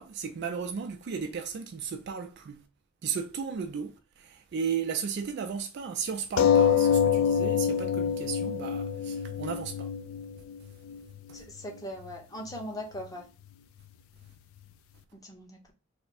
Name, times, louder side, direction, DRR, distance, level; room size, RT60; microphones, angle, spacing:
voice 1, 0.0-2.6 3.0-9.9 11.3-11.4, right 6 dB, 55° right, 0.4 m, -35 dB
sound 1, 6.4-11.4 12.1-12.2 12.5-12.6, left 8 dB, 90° left, 0.3 m, -26 dB
voice 2, 11.3-13.2 15.2-15.7, equal, 20° left, 0.8 m, -40 dB
3.3 x 2.0 x 4.1 m
head